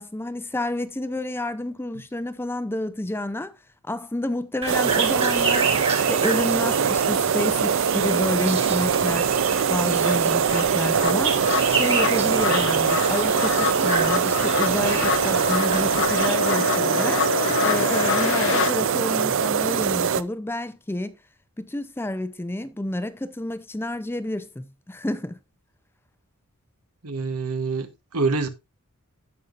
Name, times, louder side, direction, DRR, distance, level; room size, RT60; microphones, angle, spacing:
voice 1, 0.0-3.5 3.8-5.7 6.1-9.3 9.7-11.4 11.7-21.2 21.6-25.4, left 1 dB, 10° left, 0.5 m, -29 dB
sound 1, 4.6-16.4, right 5 dB, 25° right, 1.9 m, -31 dB
sound 2, 4.7-20.2, right 7 dB, 60° right, 0.5 m, -22 dB
sound 3, 8.6-8.7 9.1-18.7, left 8 dB, 55° left, 0.6 m, -27 dB
voice 2, 27.0-28.5, right 4 dB, 85° right, 1.4 m, -26 dB
15.5 x 5.5 x 2.5 m
head